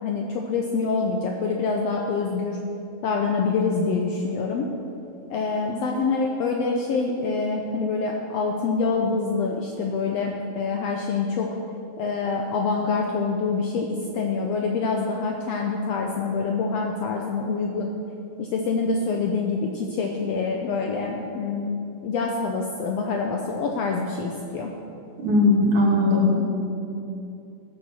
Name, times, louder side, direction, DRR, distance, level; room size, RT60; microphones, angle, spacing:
voice 1, 0.0-2.6 3.0-4.7 5.3-11.6 12.0-17.9 18.4-24.7, left 4 dB, 70° left, 1 dB, 1.8 m, -26 dB
voice 2, 25.2-26.4, left 2 dB, 75° right, -3 dB, 4.1 m, -19 dB
15.0 x 6.9 x 7.1 m, 2.7 s
omnidirectional pair, 3.4 m